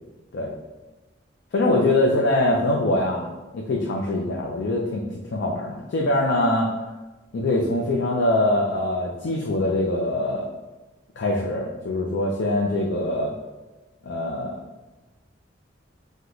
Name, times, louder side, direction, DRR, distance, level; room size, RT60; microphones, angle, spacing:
voice 1, 1.5-5.0 5.3-6.7 7.3-10.5 11.2-13.3 14.0-14.5, left 1 dB, 65° left, -1 dB, 0.4 m, -23 dB
3.8 x 2.1 x 2.9 m, 1.1 s
head